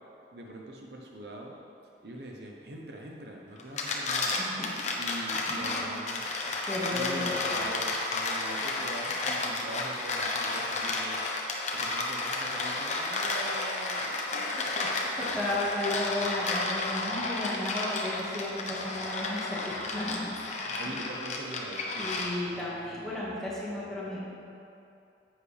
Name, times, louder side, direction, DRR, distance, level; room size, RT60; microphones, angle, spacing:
voice 1, 0.3-1.5 2.0-4.4 4.9-6.3 6.9-11.3 11.7-15.1 20.8-22.3, right 1 dB, 65° right, 0 dB, 0.8 m, -42 dB
sound 1, 3.6-22.6, left 3 dB, 40° left, 0.8 m, -32 dB
voice 2, 5.5-5.8 6.7-7.4 15.2-20.3 22.0-24.2, left 1 dB, 5° left, -8 dB, 1.7 m, -34 dB
9.9 x 7.5 x 3.3 m, 2.6 s
head